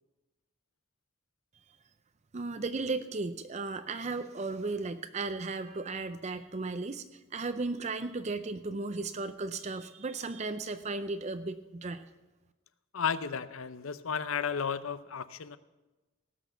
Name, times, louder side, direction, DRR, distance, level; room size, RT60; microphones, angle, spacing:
voice 1, 2.3-7.0 7.3-12.0, right 3 dB, 35° right, 10 dB, 0.5 m, -35 dB
voice 2, 12.9-15.6, left 7 dB, 90° left, 14 dB, 0.7 m, -33 dB
17.5 x 6.3 x 6.7 m, 1.1 s
head